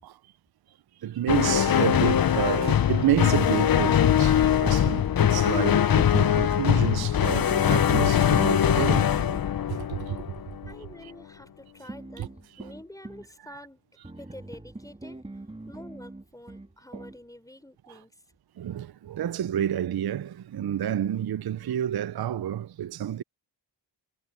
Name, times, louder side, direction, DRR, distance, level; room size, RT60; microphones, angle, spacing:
voice 1, 1.0-9.1 9.7-10.2 12.2-12.3 12.6-12.7 13.4-13.7 16.9-17.0 18.6-23.2, right 11 dB, 55° right, 0.5 m, -29 dB
sound 1, 1.3-10.7, left 10 dB, 50° left, 0.6 m, -22 dB
sound 2, 4.8-5.6 6.3-9.5 11.9-13.3 14.0-17.2, right 2 dB, 15° right, 1.5 m, -43 dB
voice 2, 10.7-12.3 12.6-13.8 14.2-15.2 15.7-18.1, left 1 dB, 5° left, 3.8 m, -47 dB
wide cardioid pair, 85°, 47 cm